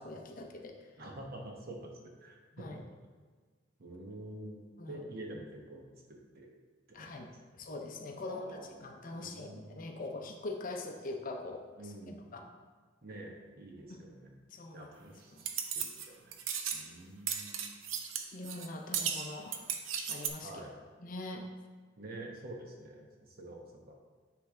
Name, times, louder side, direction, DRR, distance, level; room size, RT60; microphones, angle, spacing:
voice 1, 0.0-0.9 2.5-2.8 4.8-5.0 6.9-7.3 7.5-11.7 12.3-12.5 13.9-14.1 14.5-15.4 18.3-20.5 21.0-21.4, left 2 dB, 45° left, 3 dB, 0.6 m, -43 dB
voice 2, 1.0-2.8 3.8-5.8 6.1-6.5 6.9-7.3 8.2-8.8 9.1-9.8 11.8-12.2 13.0-14.4 14.7-16.3 16.7-17.6 20.4-20.7 22.0-23.9, right 1 dB, 50° right, 0 dB, 1.0 m, -47 dB
sound 1, 15.4-16.1 16.3-16.9 17.3-18.7 18.9-20.3, right 7 dB, 70° right, 0.6 m, -36 dB
9.5 x 3.3 x 3.7 m, 1.4 s
head